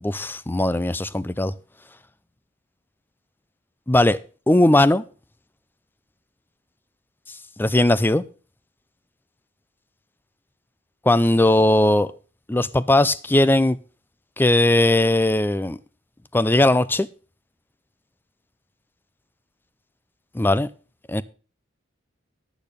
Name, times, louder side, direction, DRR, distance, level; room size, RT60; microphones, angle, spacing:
voice 1, 0.0-1.5 3.9-4.2 4.5-5.0 7.6-8.2 11.1-12.1 12.5-13.8 14.4-15.8 16.3-17.1 20.3-20.7 21.1-21.2, left 1 dB, 10° left, 0.4 m, -18 dB
10.0 x 8.8 x 5.2 m
head